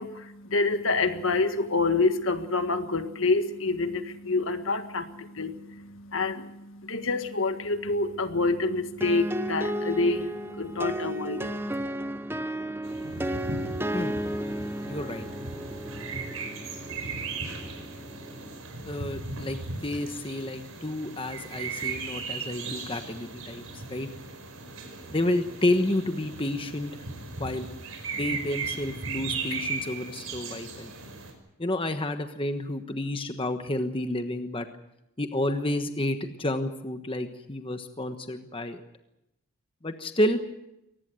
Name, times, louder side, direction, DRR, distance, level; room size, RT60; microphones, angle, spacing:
voice 1, 0.0-11.8, left 3 dB, 65° left, 9 dB, 1.7 m, -27 dB
sound 1, 9.0-18.6, right 1 dB, 10° right, 0.8 m, -34 dB
sound 2, 12.8-31.3, right 4 dB, 75° right, 5.5 m, -37 dB
voice 2, 14.8-15.3 18.9-24.1 25.1-26.9 27.3-27.7 28.1-30.9 31.6-34.7 35.2-38.8 39.8-40.4, left 1 dB, 25° left, 7 dB, 1.2 m, -30 dB
23.0 x 19.5 x 7.8 m, 0.85 s
head